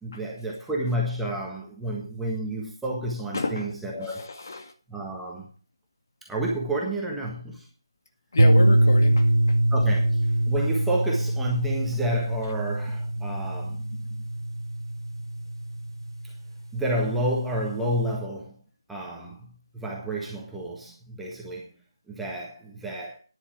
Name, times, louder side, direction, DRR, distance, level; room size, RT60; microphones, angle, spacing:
voice 1, 0.0-4.3 4.9-5.5 6.3-7.6 9.7-13.8 16.7-18.5 18.9-19.4 19.7-21.7 22.1-23.2, right 1 dB, 5° right, 1.5 m, -30 dB
voice 2, 3.3-3.7 4.0-4.7 8.3-9.2 13.3-13.4 13.9-14.0, left 3 dB, 45° left, 1.9 m, -30 dB
sound 1, 8.4-16.8, right 1 dB, 75° right, 1.1 m, -23 dB
10.0 x 8.3 x 6.1 m
figure-of-eight pair, 160°, 2 cm